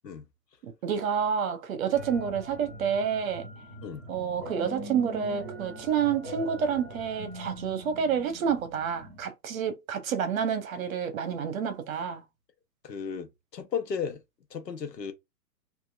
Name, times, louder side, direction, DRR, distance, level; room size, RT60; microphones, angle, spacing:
voice 1, 0.6-3.5 4.1-12.2, right 7 dB, 55° right, 0.9 m, -29 dB
sound 1, 1.9-9.2, equal, 10° left, 0.3 m, -42 dB
voice 2, 12.8-14.2 14.5-15.1, left 6 dB, 90° left, 0.9 m, -34 dB
2.9 x 2.5 x 2.4 m
hypercardioid pair, 125°, 48 cm